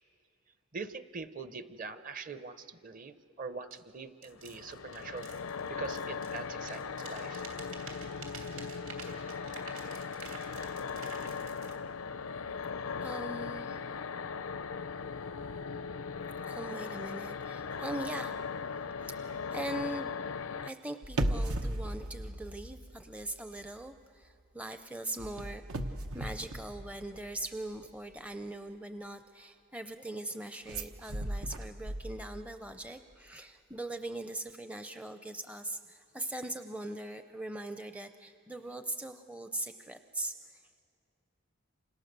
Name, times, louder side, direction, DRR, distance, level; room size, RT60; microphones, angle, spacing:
voice 1, 0.7-5.3 5.7-7.5, right 4 dB, 40° right, 11 dB, 0.8 m, -43 dB
sound 1, 3.7-3.8 4.2-6.4 6.7-11.8, right 5 dB, 65° right, 3.2 m, -50 dB
sound 2, 4.4-20.7, left 5 dB, 75° left, 0.6 m, -39 dB
voice 2, 13.0-14.0 16.5-18.4 18.7-20.1 20.6-25.6 26.1-40.4, right 1 dB, 5° right, 8 dB, 0.5 m, -41 dB
sound 3, 21.0-23.3 23.6-23.9 25.2-27.4 30.7-32.6 32.8-32.9, right 1 dB, 85° right, 1.2 m, -36 dB
29.0 x 25.5 x 6.7 m, 2.6 s
head